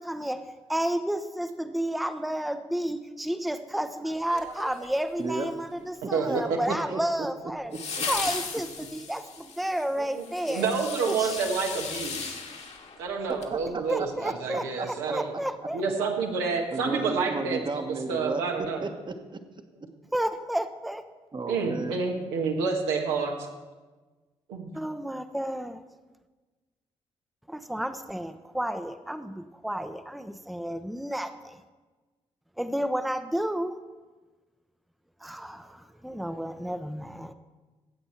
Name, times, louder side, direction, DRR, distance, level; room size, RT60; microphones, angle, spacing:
voice 1, 0.0-7.7 8.1-10.7 11.1-11.4 13.9-15.8 20.1-21.0 24.7-25.8 27.5-31.6 32.6-33.8 35.2-37.3, right 1 dB, ahead, 9 dB, 0.8 m, -31 dB
sound 1, 4.3-5.2 7.7-13.5 13.9-14.0, left 5 dB, 50° left, 1.8 m, -36 dB
voice 2, 5.2-5.5 6.0-7.3 7.7-8.1 13.3-13.6 14.0-14.9 16.7-19.4 21.3-22.0, right 3 dB, 35° right, 7 dB, 1.3 m, -34 dB
voice 3, 6.1-6.6 10.0-12.4 13.0-15.4 15.7-17.6 18.1-18.8 21.5-23.3 24.5-24.7, right 5 dB, 80° right, 1 dB, 1.5 m, -29 dB
15.0 x 8.2 x 4.4 m, 1.3 s
hypercardioid pair, 40°, 14 cm